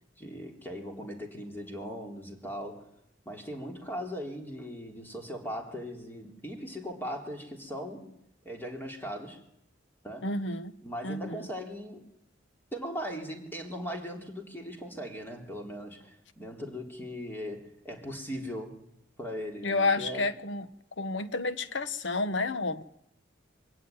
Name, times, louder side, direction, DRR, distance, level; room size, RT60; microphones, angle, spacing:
voice 1, 0.2-2.9 3.3-8.1 8.4-9.4 10.0-10.3 10.8-12.1 12.7-18.8 19.2-20.3, equal, 10° left, 3.7 m, -39 dB
voice 2, 10.2-10.8 11.0-11.5 19.6-20.7 21.0-22.8, left 3 dB, 70° left, 1.2 m, -30 dB
24.5 x 16.5 x 9.6 m
head